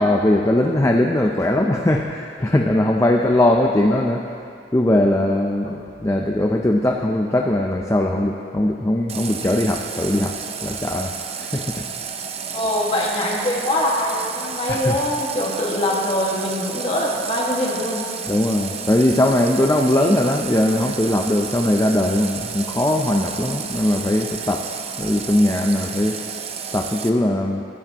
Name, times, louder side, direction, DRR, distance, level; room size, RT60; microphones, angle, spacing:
voice 1, 0.0-4.2 4.7-11.1 11.4-11.9 14.7-15.0 18.3-24.7 25.0-26.2 26.7-27.6, left 1 dB, 15° left, 1 dB, 0.5 m, -20 dB
Water tap faucet, 9.1-27.1, right 6 dB, 35° right, 0.6 m, -32 dB
voice 2, 12.5-18.1, left 1 dB, 30° left, -3 dB, 1.8 m, -23 dB
20.0 x 10.5 x 3.0 m, 2.5 s
head